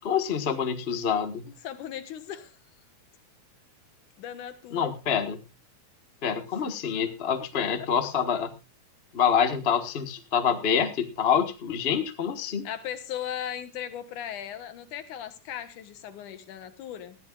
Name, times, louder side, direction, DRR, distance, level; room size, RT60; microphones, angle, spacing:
voice 1, 0.0-1.5 4.7-5.4 6.2-8.5 9.1-12.7, left 7 dB, 55° left, 7 dB, 0.6 m, -26 dB
voice 2, 1.5-2.6 4.2-4.9 12.6-17.2, left 10 dB, 75° left, 10 dB, 2.8 m, -37 dB
19.5 x 14.5 x 2.4 m, 0.30 s
omnidirectional pair, 3.6 m